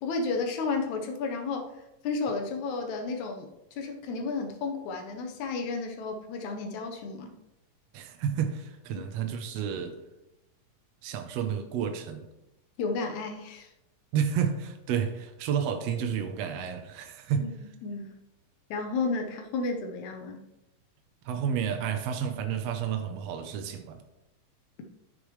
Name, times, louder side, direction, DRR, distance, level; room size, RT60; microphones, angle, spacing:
voice 1, 0.0-7.3 12.8-13.7 17.4-17.5 17.8-18.1 18.7-20.4, left 4 dB, 70° left, 1.9 m, -32 dB
voice 2, 7.9-10.0 11.0-12.2 14.1-17.5 21.2-24.0, right 8 dB, 90° right, 1.4 m, -31 dB
9.7 x 6.9 x 3.1 m
omnidirectional pair, 3.9 m